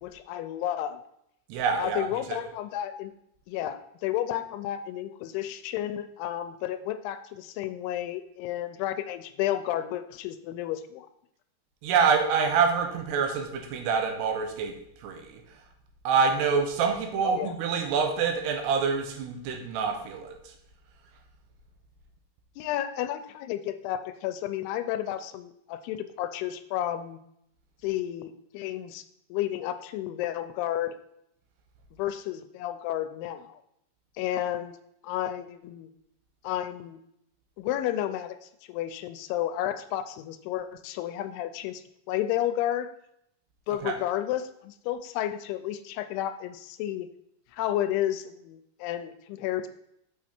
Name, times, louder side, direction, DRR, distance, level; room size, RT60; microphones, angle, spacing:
voice 1, 0.0-1.0 1.8-3.1 3.5-11.1 17.2-17.6 22.6-27.2 27.8-29.0 29.3-30.9 31.9-33.6 34.2-34.8 35.0-35.9 36.4-37.0 37.6-42.9 43.7-47.1 47.5-49.7, left 12 dB, 85° left, 10 dB, 2.5 m, -32 dB
voice 2, 1.5-2.4 11.8-14.7 15.0-15.4 16.0-20.3 43.8-44.0, right 5 dB, 85° right, 4 dB, 3.0 m, -26 dB
6.4 x 6.0 x 4.3 m, 0.75 s
omnidirectional pair, 4.7 m